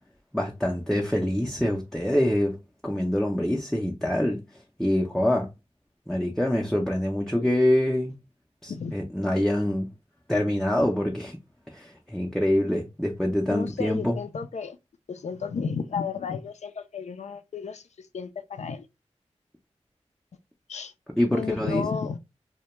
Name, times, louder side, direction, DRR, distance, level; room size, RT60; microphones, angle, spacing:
voice 1, 0.3-2.6 2.8-4.4 4.8-5.5 6.1-8.1 8.6-9.9 10.3-11.4 11.7-14.2 21.2-21.8, left 1 dB, 5° left, 0.4 m, -25 dB
voice 2, 13.5-14.8 15.1-18.9 20.7-20.9 21.3-22.2, left 5 dB, 75° left, 0.4 m, -32 dB
2.1 x 2.1 x 2.9 m
wide cardioid pair, 55°, 12 cm